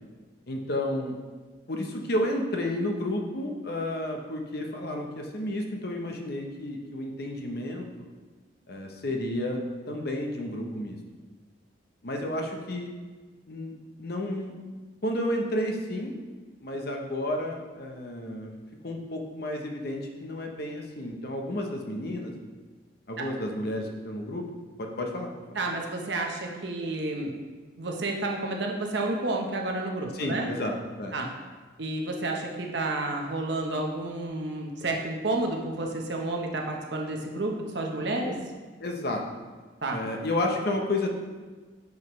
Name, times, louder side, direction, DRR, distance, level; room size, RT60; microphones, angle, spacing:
voice 1, 0.5-1.2 1.7-8.1 8.7-11.0 12.0-12.9 13.5-13.7 14.0-14.6 15.0-16.1 16.6-18.5 18.8-22.3 23.1-24.4 24.8-25.3 30.1-31.1 38.8-39.2 39.9-41.1, left 1 dB, 50° left, 2 dB, 0.8 m, -31 dB
voice 2, 25.5-27.3 27.8-30.5 31.1-31.3 31.8-38.4 39.8-40.0, right 2 dB, 60° right, 1 dB, 1.0 m, -30 dB
9.4 x 4.9 x 3.2 m, 1.4 s
head